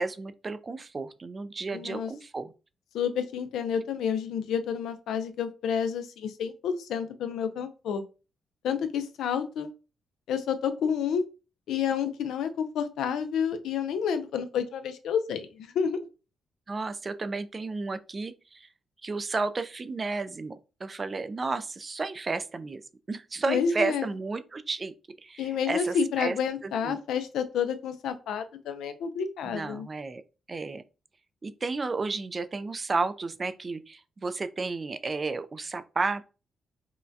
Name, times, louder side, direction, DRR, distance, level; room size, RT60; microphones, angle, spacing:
voice 1, 0.0-2.5 16.7-18.7 19.0-22.8 23.1-24.9 25.2-26.4 26.6-27.0 29.5-30.2 30.5-30.8 31.4-36.2, right 3 dB, 30° right, 0.4 m, -32 dB
voice 2, 1.7-2.1 2.9-8.0 8.6-9.7 10.3-11.2 11.7-16.0 23.5-24.1 25.4-29.9, left 7 dB, 90° left, 0.5 m, -29 dB
5.5 x 2.2 x 2.6 m
cardioid pair, 95°, 0 cm